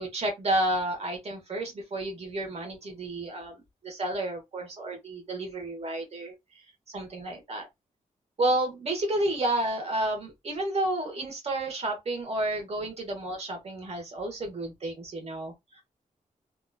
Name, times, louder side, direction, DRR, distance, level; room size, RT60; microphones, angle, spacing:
voice 1, 0.0-6.3 6.9-7.6 8.4-15.5, right 1 dB, 45° right, 1.2 m, -31 dB
2.9 x 2.4 x 2.3 m
wide cardioid pair, 95°, 14 cm